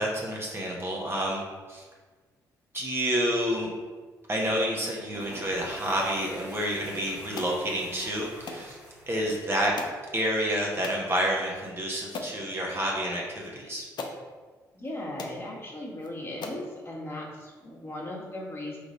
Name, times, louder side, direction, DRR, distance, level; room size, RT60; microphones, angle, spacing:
voice 1, 0.0-1.4 1.7-1.9 2.7-3.7 4.3-8.8 9.1-9.7 10.1-13.8, equal, 25° right, -3 dB, 1.1 m, -29 dB
sound 1, 5.0-10.0, right 1 dB, 80° right, 1.5 m, -47 dB
sound 2, 7.4-7.6 8.5-8.7 9.8-10.0 10.8-11.0 11.6-11.7 12.1-12.4 13.4-13.5 14.0-14.2 14.9-15.0 15.2-15.4 16.0-16.1 16.4-16.7, left 3 dB, 50° left, 0.6 m, -38 dB
voice 2, 14.7-18.8, left 1 dB, 25° left, -4 dB, 1.4 m, -37 dB
3.7 x 3.4 x 4.1 m, 1.4 s
hypercardioid pair, 45°, 9 cm